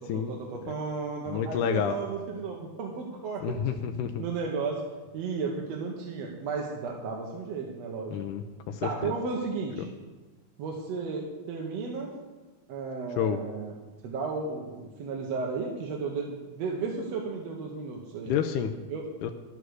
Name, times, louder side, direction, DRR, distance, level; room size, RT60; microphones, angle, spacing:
voice 1, 0.0-3.6 3.8-4.8 5.1-8.2 8.8-9.9 10.6-12.1 12.7-13.7 14.0-18.4 18.9-19.0, right 4 dB, 65° right, 0 dB, 2.0 m, -34 dB
voice 2, 1.3-1.9 3.4-4.2 8.1-9.1 13.2-13.4 18.3-18.7 19.2-19.3, left 8 dB, 85° left, 5 dB, 2.2 m, -29 dB
11.5 x 8.3 x 6.3 m, 1.3 s
omnidirectional pair, 3.6 m